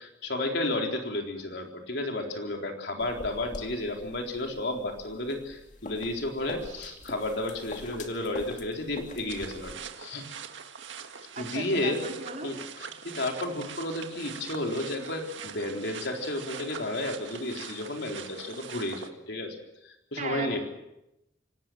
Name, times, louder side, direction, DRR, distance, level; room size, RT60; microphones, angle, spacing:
voice 1, 0.0-10.2 11.4-12.1 12.4-19.6 19.8-20.6, left 1 dB, 60° left, 2 dB, 4.0 m, -32 dB
sound 1, 3.0-9.7, left 1 dB, 40° left, 2.3 m, -44 dB
voice 2, 6.6-6.9 11.3-12.5 20.2-20.6, right 3 dB, 40° right, 1 dB, 4.0 m, -37 dB
sound 2, 9.3-19.1, right 7 dB, 75° right, 1.9 m, -43 dB
26.0 x 19.0 x 7.8 m, 0.88 s
head